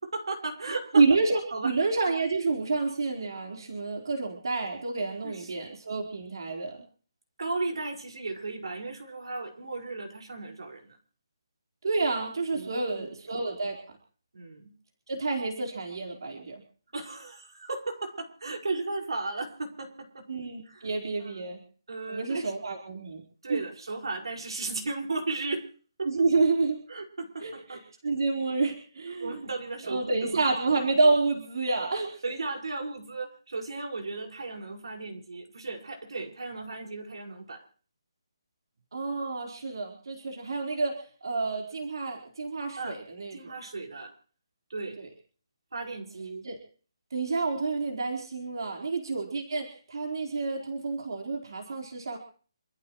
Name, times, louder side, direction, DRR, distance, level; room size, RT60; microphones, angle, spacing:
voice 1, 0.0-1.0 1.5-1.7 5.2-5.5 7.4-11.0 12.5-13.0 14.3-14.7 16.9-20.3 20.6-20.9 21.2-21.5 21.9-22.5 23.4-25.7 26.0-26.1 26.9-27.9 29.2-30.4 32.2-37.6 42.8-43.0 43.3-44.1 44.7-45.0 45.7-46.4, right 3 dB, 85° right, 2 dB, 5.4 m, -35 dB
voice 2, 0.9-6.8 11.8-13.8 15.1-16.6 20.3-21.6 22.1-23.2 23.5-23.6 26.0-26.8 27.4-29.4 29.9-32.2 38.9-43.4 45.0-45.1 46.4-46.6 47.1-52.2, right 3 dB, 60° right, 1 dB, 4.3 m, -29 dB
28.0 x 15.0 x 3.2 m, 0.42 s
hypercardioid pair, 180°, 3 cm